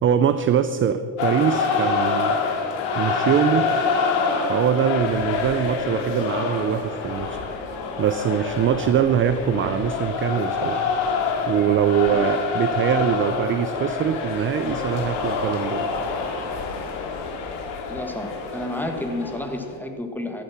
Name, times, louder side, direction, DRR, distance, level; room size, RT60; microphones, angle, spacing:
voice 1, 0.0-2.4 2.9-3.7 4.5-7.4 8.0-10.8 11.5-15.9, right 9 dB, 25° right, 11 dB, 0.4 m, -22 dB
sound 1, 1.2-19.7, left 5 dB, 70° left, 2.3 m, -26 dB
voice 2, 17.9-20.4, left 1 dB, 5° left, 5 dB, 1.4 m, -30 dB
14.5 x 11.5 x 5.8 m, 2.2 s
cardioid pair, 125°, 48 cm